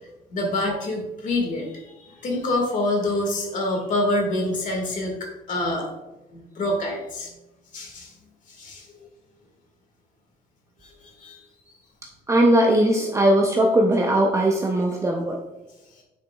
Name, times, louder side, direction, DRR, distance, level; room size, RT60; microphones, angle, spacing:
voice 1, 0.3-5.2 5.5-5.9 6.3-7.3 7.7-8.1 8.5-8.9 11.2-11.4, left 1 dB, 50° left, 1 dB, 1.9 m, -26 dB
voice 2, 12.3-15.4, right 1 dB, 15° right, 1 dB, 0.6 m, -19 dB
9.0 x 4.9 x 2.3 m, 1.0 s
cardioid pair, 110°, 17 cm